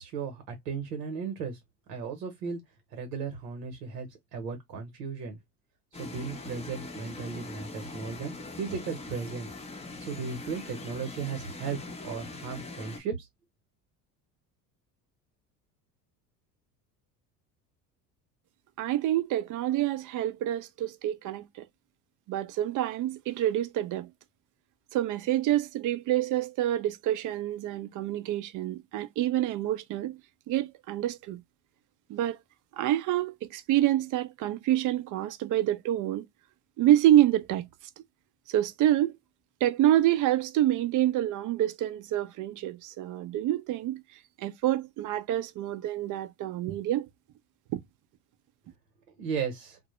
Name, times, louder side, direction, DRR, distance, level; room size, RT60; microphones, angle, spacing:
voice 1, 0.0-1.6 1.9-2.6 2.9-5.4 6.0-9.5 10.1-13.3 49.2-49.8, right 5 dB, 80° right, 0.9 m, -36 dB
sound 1, 5.9-13.0, left 3 dB, 15° left, 0.6 m, -42 dB
voice 2, 18.8-21.6 22.3-24.1 24.9-30.2 30.5-31.4 32.1-32.4 32.7-36.3 36.8-37.7 38.0-38.1 38.5-39.1 39.6-44.0 44.4-47.1 47.7-47.8, right 13 dB, 40° right, 0.4 m, -27 dB
2.1 x 2.0 x 2.9 m
hypercardioid pair, 70°, 48 cm